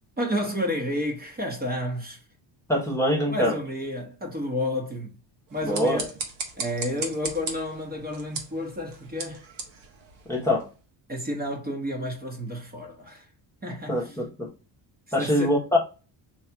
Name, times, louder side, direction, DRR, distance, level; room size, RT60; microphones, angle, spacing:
voice 1, 0.2-2.2 3.3-5.2 5.5-6.1 6.6-9.5 11.1-13.3 13.6-14.2 15.2-15.6, left 1 dB, 20° right, 1.0 m, -31 dB
voice 2, 2.7-3.6 5.6-6.0 10.3-10.7 13.9-14.5 15.1-15.8, left 1 dB, 5° left, 1.0 m, -24 dB
sound 1, 5.5-10.8, right 4 dB, 80° right, 1.3 m, -37 dB
3.1 x 2.9 x 4.5 m
cardioid pair, 130°, 45 cm